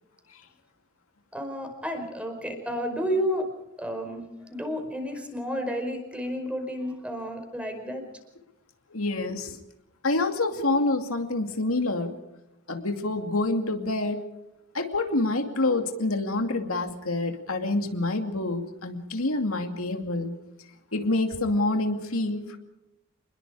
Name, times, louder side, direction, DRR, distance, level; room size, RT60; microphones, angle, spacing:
voice 1, 1.3-3.5 3.8-8.0, equal, 5° right, 5 dB, 5.0 m, -31 dB
voice 2, 8.9-9.6 10.0-12.1 12.7-14.2 14.7-20.3 20.9-22.6, left 2 dB, 85° left, 5 dB, 2.5 m, -27 dB
27.5 x 21.0 x 4.9 m, 0.91 s
head